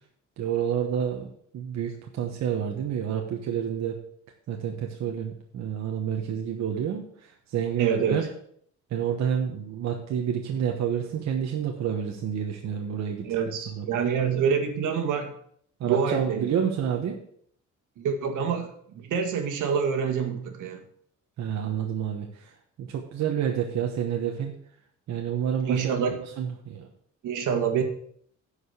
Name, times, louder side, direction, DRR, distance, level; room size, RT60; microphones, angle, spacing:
voice 1, 0.4-4.0 4.5-8.3 8.9-13.3 13.8-13.9 15.8-17.2 21.4-22.5 22.8-24.5 25.1-26.9, right 8 dB, 60° right, 2 dB, 1.2 m, -29 dB
voice 2, 7.8-8.2 13.2-15.3 15.8-16.5 18.0-20.8 25.6-26.1 27.2-27.8, right 6 dB, 80° right, 5 dB, 1.8 m, -26 dB
10.5 x 5.0 x 6.7 m, 0.65 s
cardioid pair, 145°, 30 cm